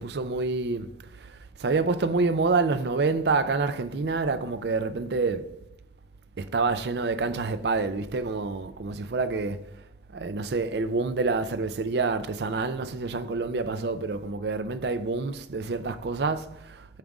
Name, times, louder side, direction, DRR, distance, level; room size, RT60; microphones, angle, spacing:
voice 1, 0.0-5.5 6.4-9.6 10.1-17.0, right 3 dB, 65° right, 0.5 m, -27 dB
8.8 x 3.7 x 6.0 m
head